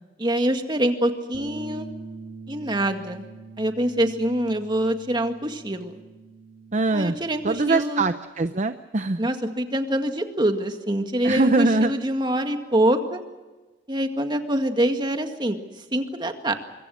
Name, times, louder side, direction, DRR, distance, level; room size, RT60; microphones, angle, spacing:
voice 1, 0.2-1.9 2.5-3.2 3.6-5.9 6.9-8.1 9.2-13.2 13.9-16.5, right 1 dB, 25° right, 6 dB, 2.0 m, -25 dB
Bass guitar, 1.3-7.6, right 3 dB, 65° right, 2.9 m, -43 dB
voice 2, 6.7-7.1 7.4-9.3 11.2-11.9, right 3 dB, 40° right, 10 dB, 0.7 m, -22 dB
25.0 x 23.5 x 6.5 m, 1.2 s
head